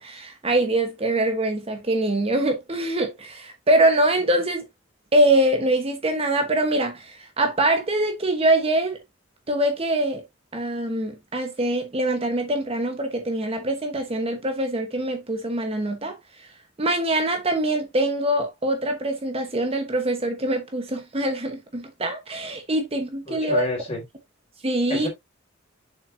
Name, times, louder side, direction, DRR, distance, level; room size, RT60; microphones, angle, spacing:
voice 1, 0.0-4.6 5.1-9.0 9.5-10.2 10.5-16.2 16.8-23.7 24.6-25.1, right 1 dB, 30° right, 1.1 m, -23 dB
voice 2, 23.3-24.0 24.9-25.1, left 1 dB, 30° left, 3.5 m, -29 dB
6.9 x 5.6 x 2.6 m
head